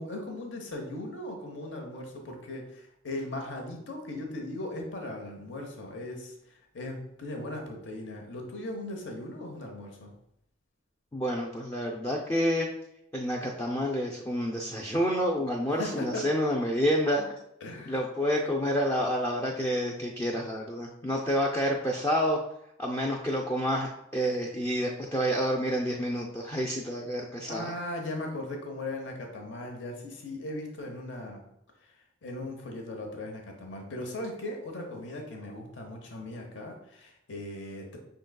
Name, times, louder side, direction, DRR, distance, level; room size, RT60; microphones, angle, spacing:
voice 1, 0.0-10.1 15.8-16.3 17.6-18.0 27.5-31.4 32.2-38.0, left 1 dB, 65° left, 2 dB, 0.8 m, -38 dB
voice 2, 11.1-12.7 13.1-17.3 17.9-22.4 22.8-27.7, equal, 15° left, -2 dB, 0.4 m, -28 dB
5.7 x 3.8 x 2.2 m, 0.80 s
head